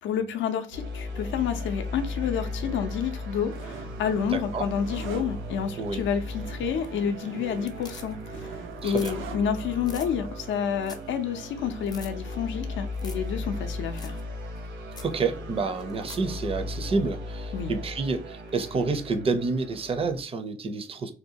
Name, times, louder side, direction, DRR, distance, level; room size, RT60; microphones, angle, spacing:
voice 1, 0.0-14.2 17.5-17.7, left 7 dB, 75° left, 0.5 m, -29 dB
sound 1, 0.7-20.2, left 2 dB, 70° right, 0.8 m, -37 dB
sound 2, 3.5-10.3, right 6 dB, 85° right, 0.5 m, -44 dB
voice 2, 4.3-4.6 5.8-6.0 8.8-9.1 15.0-21.1, right 4 dB, 30° right, 0.5 m, -29 dB
sound 3, 6.7-7.2 7.5-8.4 8.7-9.2 9.5-9.6 9.8-10.1 10.5-10.6 10.8-11.1 11.4-11.5 11.8-12.1 12.9-13.3 13.6-13.7 14.0-14.2 14.6-14.7 14.9-15.1 15.8-16.3 18.5-18.6, left 3 dB, 20° left, 0.5 m, -45 dB
2.7 x 2.2 x 2.6 m
cardioid pair, 90°, 20 cm